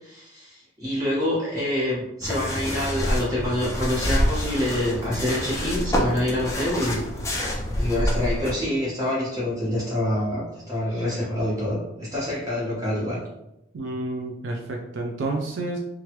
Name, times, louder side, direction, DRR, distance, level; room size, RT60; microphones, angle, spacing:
voice 1, 0.0-7.0 7.8-13.2, left 1 dB, 20° right, -7 dB, 1.1 m, -26 dB
sound 1, 2.2-8.5, equal, 15° left, 0.4 m, -27 dB
voice 2, 13.7-15.8, right 2 dB, 70° right, 1 dB, 0.4 m, -30 dB
3.0 x 2.3 x 2.9 m, 0.88 s
head